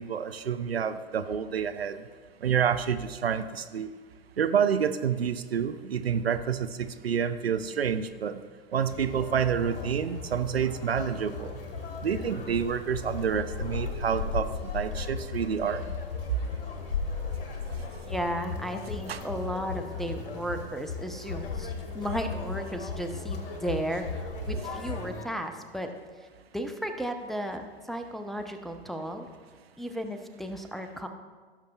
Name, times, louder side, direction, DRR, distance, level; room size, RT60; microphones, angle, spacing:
voice 1, 0.0-2.0 2.4-3.9 4.4-8.4 8.7-11.6 12.0-16.0 19.1-19.2, right 7 dB, 85° right, 11 dB, 0.5 m, -28 dB
Conversation, 8.9-25.3, left 4 dB, 65° left, 1.2 m, -36 dB
voice 2, 18.1-25.9 26.2-26.3 26.5-29.3 29.8-31.1, equal, ahead, 4 dB, 0.5 m, -34 dB
16.0 x 6.6 x 2.3 m, 1.5 s
figure-of-eight pair, 85°, 30 cm